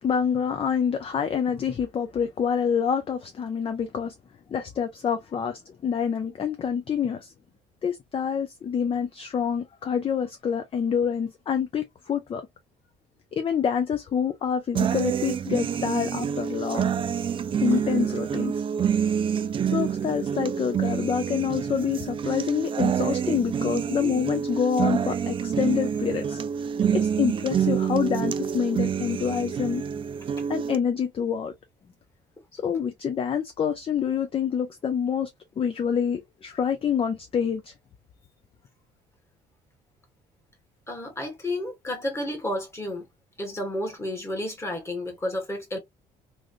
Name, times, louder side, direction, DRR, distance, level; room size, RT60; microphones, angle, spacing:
voice 1, 0.0-4.1 4.5-7.3 7.8-12.4 13.3-16.9 17.6-18.5 19.7-26.4 26.9-29.8 30.5-31.5 32.6-35.3 35.6-37.7, left 7 dB, 35° left, 0.5 m, -27 dB
sound 1, 14.8-30.8, right 8 dB, 30° right, 0.4 m, -27 dB
voice 2, 40.9-43.1 43.4-45.8, left 1 dB, 15° left, 1.4 m, -31 dB
3.1 x 2.5 x 2.5 m
cardioid pair, 110°, 17 cm